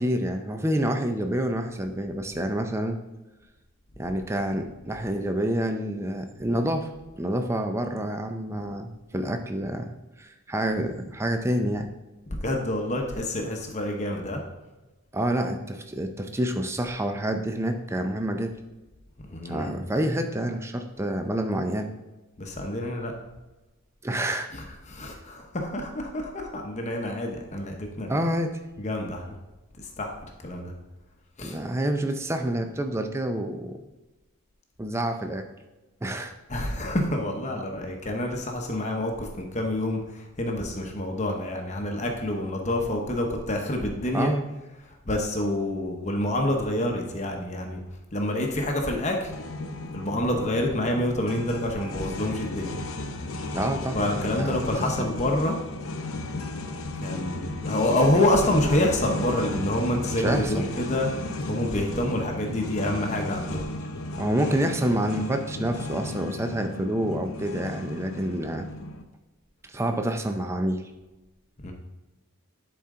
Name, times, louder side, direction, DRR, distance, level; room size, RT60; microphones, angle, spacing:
voice 1, 0.0-3.0 4.0-6.9 7.2-11.9 15.1-18.6 19.5-21.9 24.0-24.5 28.1-28.6 31.4-33.8 34.8-35.5 36.0-36.3 44.1-44.4 53.5-54.6 60.2-60.7 64.2-68.7 69.7-70.8, right 1 dB, 10° right, 6 dB, 0.4 m, -28 dB
voice 2, 12.4-14.4 19.3-19.8 22.4-23.1 24.5-28.1 28.8-29.3 29.8-30.7 31.4-31.6 36.5-44.3 44.8-47.8 48.1-49.3 49.9-52.8 53.9-55.6 57.0-61.1 61.5-63.6 71.6-71.7, left 1 dB, 30° left, 2 dB, 0.9 m, -27 dB
sound 1, 49.3-69.0, left 2 dB, 70° left, 0.7 m, -34 dB
11.0 x 4.4 x 3.7 m, 1.1 s
head